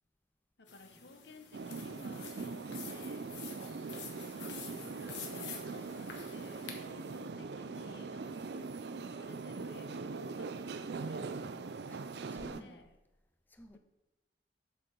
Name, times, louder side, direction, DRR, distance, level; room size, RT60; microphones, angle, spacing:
voice 1, 0.6-3.4 4.3-11.3 12.2-13.0, left 2 dB, 70° left, 7 dB, 0.9 m, -56 dB
sound 1, 0.7-6.8, left 6 dB, 85° left, 1.3 m, -49 dB
sound 2, 1.5-12.6, right 4 dB, 65° right, 0.5 m, -41 dB
voice 2, 11.9-12.9 13.5-13.8, equal, 10° left, 7 dB, 0.5 m, -53 dB
7.7 x 5.2 x 6.0 m, 1.0 s
head